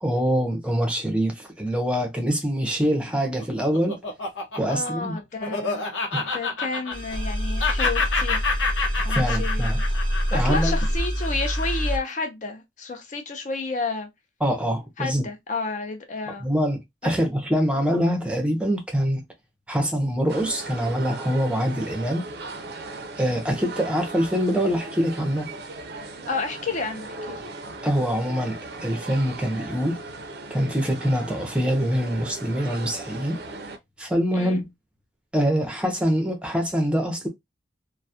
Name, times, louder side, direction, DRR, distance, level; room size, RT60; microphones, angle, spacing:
voice 1, 0.0-4.0 4.6-5.2 6.1-6.2 9.1-9.8 10.3-10.8 14.4-15.3 16.3-19.2 19.7-22.3 23.2-25.5 27.8-30.0 30.5-33.4 34.0-34.7 35.3-37.3, equal, 5° right, 0.6 m, -24 dB
Laughter, 3.1-7.3 7.6-12.0, left 4 dB, 85° left, 0.8 m, -28 dB
voice 2, 4.7-5.8 6.2-8.4 9.0-9.7 10.3-14.1 15.0-16.5 17.0-17.1 17.7-17.8 26.3-27.4 34.3-34.6, left 3 dB, 40° left, 0.5 m, -31 dB
sound 1, 6.9-12.0, equal, 25° left, 0.8 m, -26 dB
sound 2, 20.3-33.8, right 3 dB, 55° right, 0.4 m, -38 dB
2.3 x 2.1 x 2.7 m
head